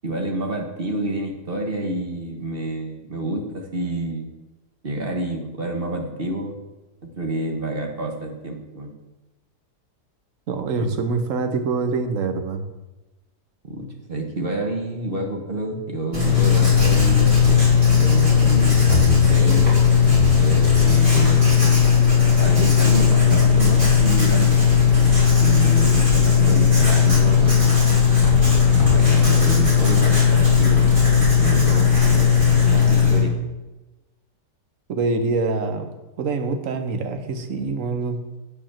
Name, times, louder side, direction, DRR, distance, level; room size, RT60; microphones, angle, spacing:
voice 1, 0.0-4.3 4.8-6.6 7.0-8.9 10.8-10.9 13.6-17.7 17.9-21.6 22.4-24.6 25.4-27.8 28.7-30.9 31.2-33.4, right 2 dB, 35° right, 2 dB, 1.5 m, -28 dB
voice 2, 10.5-12.7 34.9-38.4, right 3 dB, 55° right, 6 dB, 1.3 m, -25 dB
Writing, 16.1-33.2, left 6 dB, 20° right, 3.2 m, -16 dB
9.0 x 5.4 x 7.3 m, 1.1 s
omnidirectional pair, 1.8 m